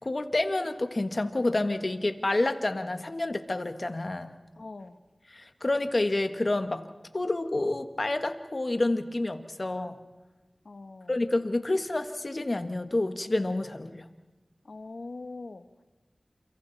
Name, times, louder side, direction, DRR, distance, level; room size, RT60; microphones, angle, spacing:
voice 1, 0.0-4.3 5.3-6.8 7.1-10.0 11.1-14.0, left 2 dB, 50° left, 8 dB, 1.6 m, -29 dB
voice 2, 4.6-5.0 10.6-11.1 14.6-15.8, left 3 dB, 80° left, 9 dB, 1.2 m, -42 dB
30.0 x 27.5 x 4.2 m, 1.2 s
wide cardioid pair, 50°, 0 cm